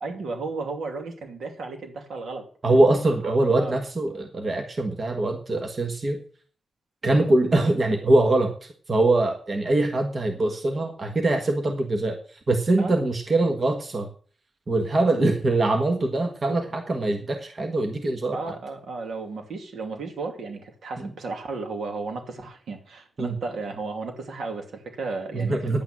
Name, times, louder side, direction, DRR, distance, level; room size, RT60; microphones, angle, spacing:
voice 1, 0.0-2.4 3.2-3.8 12.8-13.0 18.3-25.8, right 3 dB, 75° right, 4 dB, 2.6 m, -34 dB
voice 2, 2.6-6.2 7.0-14.1 14.7-18.4 21.0-21.1 23.2-23.3 25.3-25.8, right 2 dB, 35° right, 4 dB, 1.4 m, -23 dB
10.5 x 8.9 x 6.1 m, 0.43 s
wide cardioid pair, 140°, 0 cm